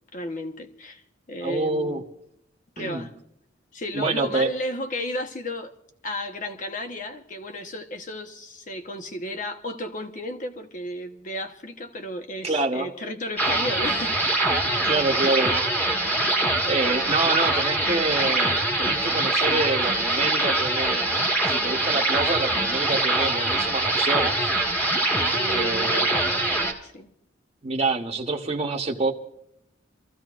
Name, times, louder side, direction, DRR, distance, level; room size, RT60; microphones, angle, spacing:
voice 1, 0.1-2.0 2.8-3.1 3.7-5.7 6.0-15.3 16.2-16.6 25.3-27.1, left 1 dB, 45° left, 1.1 m, -34 dB
voice 2, 1.4-2.0 2.8-3.1 3.9-4.5 12.4-12.9 14.9-15.5 16.7-24.5 25.5-26.1 27.6-29.1, right 3 dB, 35° right, 1.1 m, -26 dB
sound 1, 13.4-26.7, right 2 dB, 10° left, 1.6 m, -23 dB
28.0 x 14.5 x 2.5 m
head